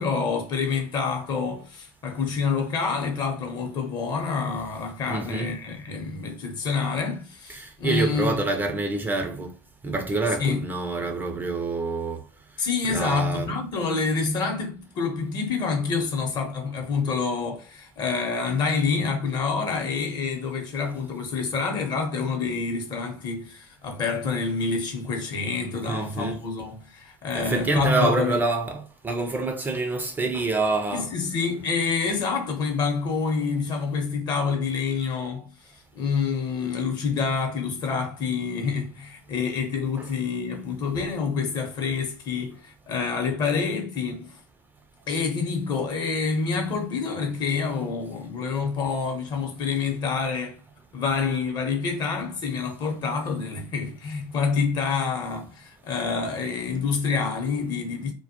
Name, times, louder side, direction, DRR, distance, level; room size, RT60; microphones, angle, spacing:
voice 1, 0.0-8.3 10.4-10.6 12.6-28.4 30.9-44.4 45.1-50.6 50.9-58.1, left 5 dB, 45° left, 0.8 m, -27 dB
voice 2, 5.1-5.5 7.5-9.5 9.8-12.2 12.9-13.5 25.9-26.4 27.3-31.1, right 3 dB, 20° right, 0.5 m, -26 dB
2.2 x 2.1 x 2.8 m
hypercardioid pair, 80°, 10 cm